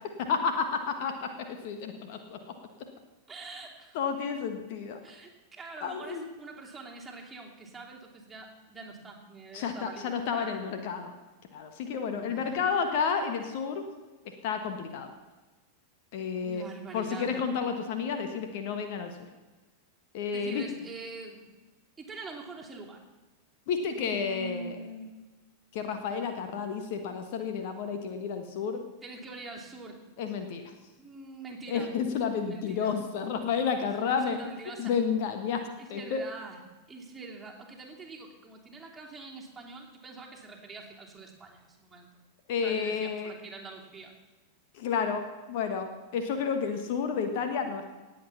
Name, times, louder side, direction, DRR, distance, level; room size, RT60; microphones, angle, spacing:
voice 1, 0.2-2.4 3.9-5.0 5.8-6.3 9.5-11.1 11.5-13.8 14.4-15.1 16.1-16.6 16.9-19.1 20.1-20.6 23.7-24.8 25.7-28.8 30.2-30.6 31.7-34.4 34.8-35.6 35.9-36.2 42.5-43.3 44.7-45.2 45.5-47.8, left 6 dB, 50° left, 6 dB, 1.4 m, -31 dB
voice 2, 3.3-4.0 5.0-10.6 12.1-12.5 16.4-17.3 20.3-21.4 22.0-23.0 23.9-25.1 29.0-30.0 31.0-31.9 32.5-33.0 34.1-34.9 35.8-36.6 36.9-42.1 42.6-44.1, right 3 dB, 10° right, -2 dB, 2.9 m, -44 dB
18.5 x 8.0 x 5.7 m, 1.2 s
figure-of-eight pair, 90°, 0 cm